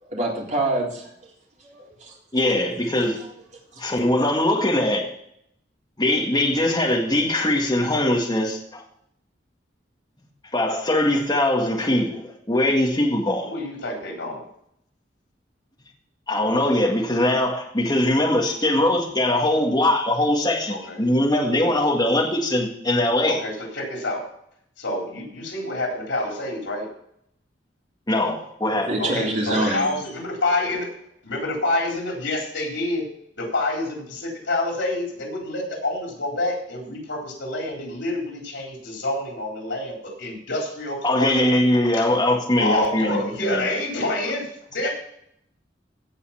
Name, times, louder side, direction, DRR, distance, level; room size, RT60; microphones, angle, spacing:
voice 1, 0.0-1.1 1.6-2.2 2.9-3.0 3.7-3.9 28.6-29.9, right 2 dB, 40° right, -3 dB, 3.8 m, -26 dB
voice 2, 2.3-3.2 3.8-5.0 6.0-8.8 10.5-13.5 16.3-23.4 28.1-28.9 41.0-43.6, left 1 dB, 25° left, 0 dB, 1.9 m, -21 dB
voice 3, 13.4-14.4 20.7-21.0 23.3-24.2 24.8-26.9 29.0-30.9 31.2-33.0 33.4-41.4 41.9-42.1 42.6-44.9, left 2 dB, 85° left, 0 dB, 4.0 m, -27 dB
17.0 x 5.7 x 5.7 m, 0.71 s
head